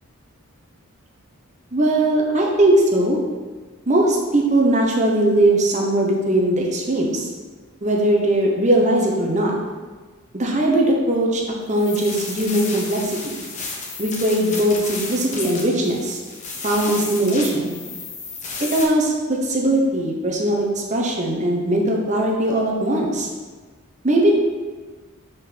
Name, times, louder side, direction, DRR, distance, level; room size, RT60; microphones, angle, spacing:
voice 1, 1.7-3.2 3.9-7.3 7.8-9.6 10.3-11.4 11.7-13.4 14.0-16.2 16.6-17.8 18.6-23.3 24.0-24.3, right 1 dB, 30° right, -1 dB, 1.0 m, -19 dB
sound 1, 11.7-18.8, left 3 dB, 35° left, 1.2 m, -32 dB
6.2 x 5.3 x 6.0 m, 1.4 s
head